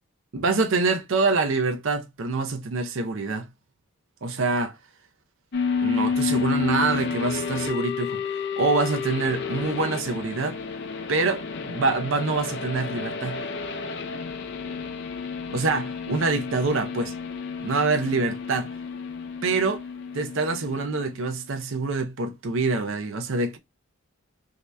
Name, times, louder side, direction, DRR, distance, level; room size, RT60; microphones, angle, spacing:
voice 1, 0.3-3.5 4.2-4.8 5.8-10.6 11.1-13.4 15.5-17.1 17.6-18.7 19.4-19.8 20.1-23.6, right 3 dB, 60° right, 0.6 m, -25 dB
sound 1, 5.5-21.3, left 5 dB, 50° left, 0.6 m, -31 dB
3.3 x 2.8 x 3.2 m
head